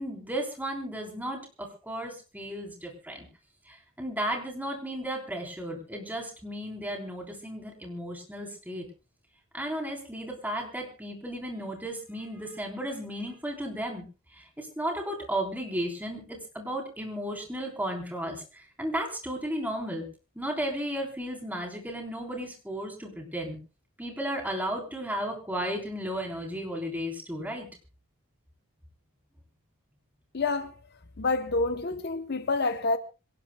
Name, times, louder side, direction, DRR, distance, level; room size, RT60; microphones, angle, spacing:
voice 1, 0.0-3.3 3.7-8.8 9.5-14.1 14.3-20.1 20.4-23.6 24.0-27.7, right 1 dB, 10° right, 3.7 m, -34 dB
voice 2, 30.3-30.8 31.2-33.0, left 3 dB, 45° left, 0.8 m, -28 dB
26.5 x 18.0 x 2.2 m
head